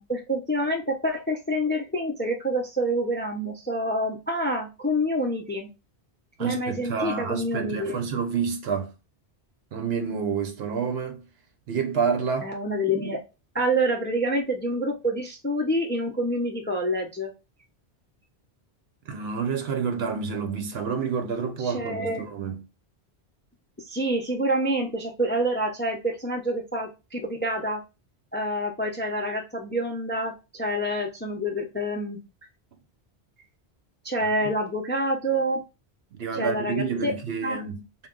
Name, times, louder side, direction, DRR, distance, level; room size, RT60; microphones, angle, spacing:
voice 1, 0.0-5.7 6.4-8.0 12.4-13.2 13.5-17.3 21.6-22.3 23.8-27.8 28.3-32.2 34.0-35.6 36.3-37.1 37.4-37.6, equal, 15° left, 0.4 m, -27 dB
voice 2, 6.4-8.9 9.7-11.2 11.7-12.5 19.1-22.6 34.2-34.5 36.1-37.8, right 6 dB, 70° right, 1.0 m, -29 dB
3.7 x 2.3 x 3.7 m
omnidirectional pair, 1.1 m